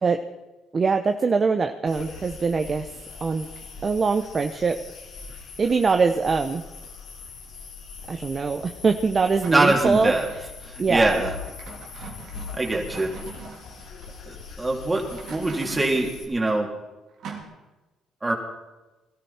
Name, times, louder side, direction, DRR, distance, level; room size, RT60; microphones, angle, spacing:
voice 1, 0.7-2.9 3.2-3.5 3.8-4.8 5.6-6.6 8.1-10.1 10.8-11.2, right 4 dB, 40° right, 7 dB, 0.8 m, -23 dB
sound 1, 1.9-16.2, left 5 dB, 70° left, 2.9 m, -41 dB
sound 2, 9.2-10.4 11.4-14.1 15.0-16.1 17.2-17.4, right 5 dB, 70° right, 2.8 m, -41 dB
voice 2, 9.5-10.3 10.6-11.3 12.5-13.1 14.3-16.7 18.2-18.3, right 2 dB, 20° right, 1 dB, 3.3 m, -23 dB
20.5 x 13.5 x 4.4 m, 1.1 s
supercardioid pair, 70°, 0 cm